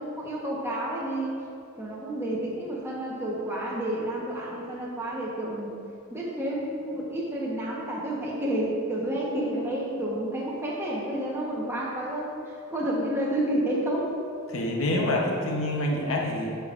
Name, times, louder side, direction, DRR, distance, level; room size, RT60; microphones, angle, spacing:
voice 1, 0.0-1.3 1.8-5.8 6.1-12.3 12.7-14.1, right 1 dB, 10° right, -5 dB, 1.1 m, -30 dB
voice 2, 14.5-16.6, left 1 dB, 70° left, -1 dB, 0.9 m, -27 dB
9.9 x 5.2 x 2.5 m, 2.4 s
head